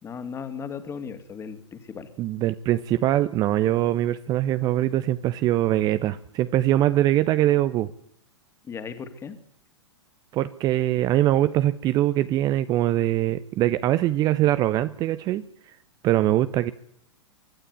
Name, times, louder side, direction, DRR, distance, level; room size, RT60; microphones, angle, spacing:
voice 1, 0.0-2.1 8.7-9.4, left 6 dB, 15° left, 10 dB, 2.5 m, -36 dB
voice 2, 2.2-7.9 10.3-15.4 16.0-16.7, right 13 dB, 25° right, 14 dB, 0.8 m, -22 dB
24.0 x 12.5 x 9.4 m, 0.68 s
figure-of-eight pair, 105°, 15 cm